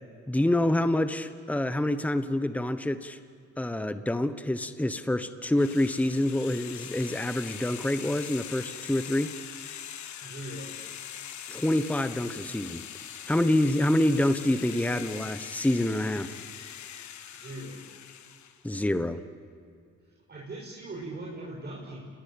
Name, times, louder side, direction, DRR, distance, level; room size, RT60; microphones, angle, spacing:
voice 1, 0.3-3.2 3.6-9.3 11.5-12.8 13.3-16.3 18.6-19.2, left 1 dB, 5° left, 11 dB, 1.1 m, -27 dB
sound 1, 5.6-18.6, left 9 dB, 70° left, 1.7 m, -42 dB
voice 2, 10.2-10.8 17.3-17.8 20.3-22.0, right 1 dB, 35° right, -3 dB, 5.9 m, -40 dB
29.5 x 20.5 x 8.7 m, 2.3 s
cardioid pair, 90°, 30 cm